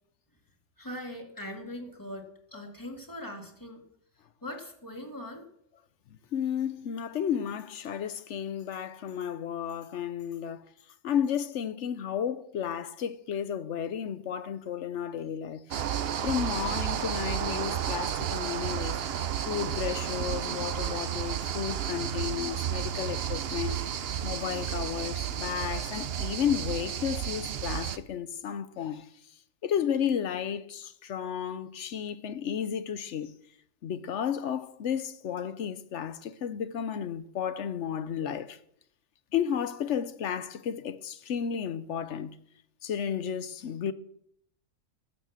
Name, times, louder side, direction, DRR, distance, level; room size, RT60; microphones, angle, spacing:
voice 1, 0.8-3.9 4.4-5.5, left 1 dB, 15° left, 2.2 m, -41 dB
voice 2, 6.3-10.6 11.0-15.9 16.2-19.0 19.4-23.8 24.2-29.1 29.6-33.3 33.8-38.6 39.3-42.3 42.8-43.9, left 8 dB, 65° left, 1.0 m, -32 dB
sound 1, 15.7-28.0, right 9 dB, 55° right, 0.8 m, -32 dB
13.0 x 9.2 x 7.4 m
omnidirectional pair, 1.4 m